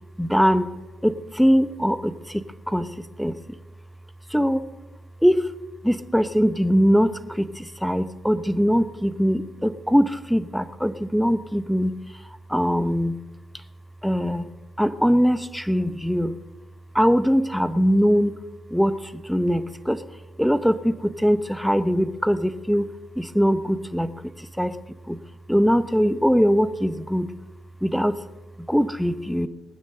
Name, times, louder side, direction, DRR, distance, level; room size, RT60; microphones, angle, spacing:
voice 1, 0.2-0.7 1.0-3.3 4.3-4.7 5.2-5.5 5.8-13.2 14.0-14.5 14.8-16.4 16.9-18.4 18.7-20.0 20.4-24.8 25.1-25.2 25.5-27.3 27.8-28.2 28.6-29.5, equal, ahead, 13 dB, 0.8 m, -22 dB
19.5 x 9.8 x 6.6 m, 1.2 s
cardioid pair, 70°, 0 cm